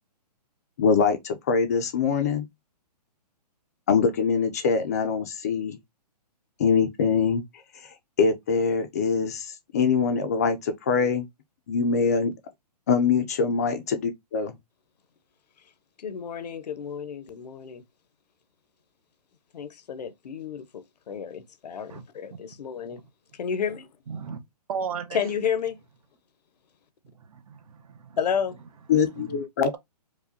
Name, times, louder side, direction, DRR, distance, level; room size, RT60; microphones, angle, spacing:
voice 1, 0.8-2.5 3.9-5.8 6.6-7.4 8.2-11.2 11.7-12.3 12.9-14.5 28.9-29.8, left 5 dB, 25° left, 0.4 m, -23 dB
voice 2, 16.0-17.8 19.5-23.0 23.3-23.9 25.1-25.8 28.2-28.6, left 7 dB, 75° left, 0.7 m, -31 dB
voice 3, 24.1-24.4 24.7-25.3 27.3-28.2 29.2-29.4, right 6 dB, 60° right, 0.8 m, -35 dB
4.8 x 2.1 x 2.6 m
hypercardioid pair, 160°, 21 cm